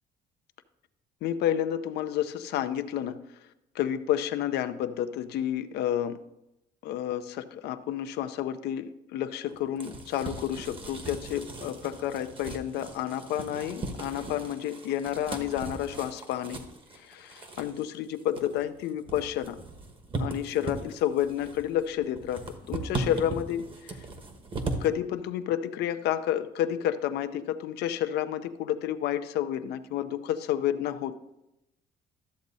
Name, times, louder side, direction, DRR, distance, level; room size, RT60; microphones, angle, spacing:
voice 1, 1.2-3.2 3.7-6.2 6.8-16.6 16.9-19.6 20.2-24.0 24.8-31.2, left 11 dB, 75° left, 10 dB, 0.5 m, -30 dB
sound 1, 9.5-24.9, right 2 dB, 30° right, 1.0 m, -38 dB
12.5 x 7.2 x 2.7 m, 0.88 s
cardioid pair, 110°, 17 cm